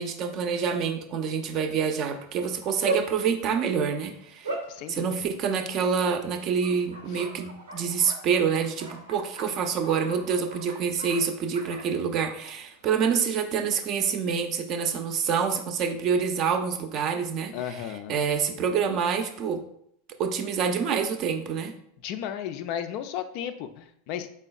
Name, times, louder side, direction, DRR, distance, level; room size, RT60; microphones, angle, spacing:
voice 1, 0.0-4.5 4.9-17.5 18.1-19.6 20.2-21.7, right 6 dB, 45° right, 6 dB, 0.5 m, -27 dB
Bark, 2.1-13.4, right 3 dB, 90° right, 0.7 m, -39 dB
voice 2, 4.5-5.1 7.1-7.2 17.5-18.2 22.0-24.3, left 9 dB, 55° left, 10 dB, 0.3 m, -34 dB
4.3 x 3.3 x 2.4 m, 0.71 s
figure-of-eight pair, 85°, 0 cm